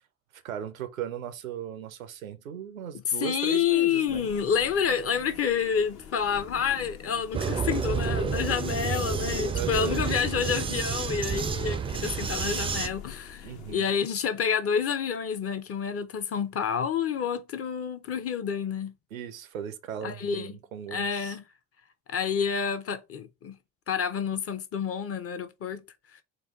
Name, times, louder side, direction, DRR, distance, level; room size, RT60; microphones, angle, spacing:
voice 1, 0.3-4.3 9.5-10.0 13.4-13.9 19.1-21.4, right 9 dB, 85° right, 0.5 m, -37 dB
voice 2, 3.1-18.9 20.0-20.5 20.9-21.4 22.1-23.6 23.9-25.8, left 7 dB, 35° left, 0.6 m, -28 dB
sound 1, 4.1-13.7, left 8 dB, 60° left, 0.9 m, -45 dB
Vehicle, 7.3-12.9, right 6 dB, 15° right, 0.3 m, -30 dB
4.2 x 2.3 x 3.4 m
figure-of-eight pair, 45°, 40 cm